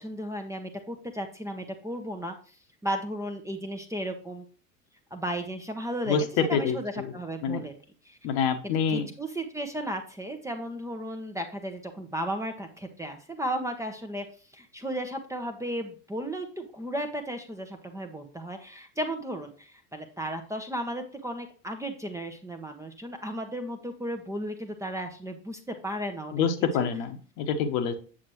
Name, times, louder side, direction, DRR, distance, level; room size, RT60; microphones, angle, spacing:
voice 1, 0.0-2.6 2.8-4.4 5.1-7.7 8.0-8.2 8.9-14.3 14.5-26.4, right 1 dB, 5° right, 4 dB, 1.0 m, -34 dB
voice 2, 6.1-7.1 7.4-7.6 8.2-9.1 26.3-27.9, left 6 dB, 50° left, 6 dB, 1.4 m, -27 dB
8.7 x 7.3 x 3.1 m, 0.39 s
figure-of-eight pair, 80°, 48 cm